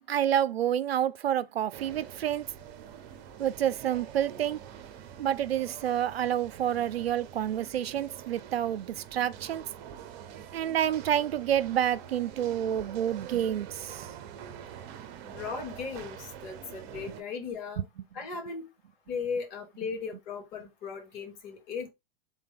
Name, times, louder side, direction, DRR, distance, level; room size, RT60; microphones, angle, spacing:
voice 1, 0.1-2.4 3.4-4.6 5.2-9.6 10.5-14.1 17.8-17.9, right 10 dB, 90° right, 0.5 m, -28 dB
sound 1, 1.7-17.2, right 9 dB, 45° right, 0.9 m, -45 dB
voice 2, 15.2-17.8 18.1-18.7 19.1-21.9, left 5 dB, 50° left, 2.3 m, -37 dB
3.9 x 3.3 x 4.0 m
hypercardioid pair, 110°, 30 cm